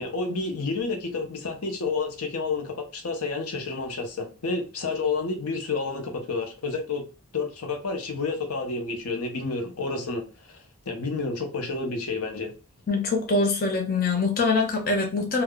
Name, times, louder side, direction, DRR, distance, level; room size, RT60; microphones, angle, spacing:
voice 1, 0.0-7.0 7.3-10.6 10.9-12.5, left 3 dB, 75° left, 0.8 m, -30 dB
voice 2, 12.9-15.4, left 3 dB, 45° left, 0.5 m, -24 dB
3.6 x 2.3 x 2.2 m
head